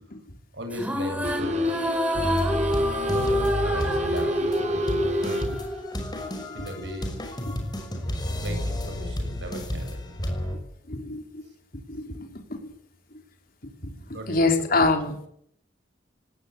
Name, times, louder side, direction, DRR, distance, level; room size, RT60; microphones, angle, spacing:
voice 1, 0.5-1.9 3.0-5.6 6.5-7.2 8.4-10.2 14.1-14.6, right 1 dB, 70° right, 5 dB, 7.7 m, -37 dB
sound 1, 0.7-6.2, left 1 dB, 10° right, 4.7 m, -27 dB
sound 2, 1.2-5.8, right 1 dB, 40° right, 1.3 m, -33 dB
sound 3, 2.1-10.6, equal, 25° left, 5.9 m, -31 dB
voice 2, 10.9-11.4 11.9-12.8 13.1-13.2 13.6-15.3, left 3 dB, 55° left, 4 dB, 4.1 m, -27 dB
19.0 x 18.5 x 9.8 m, 0.68 s
head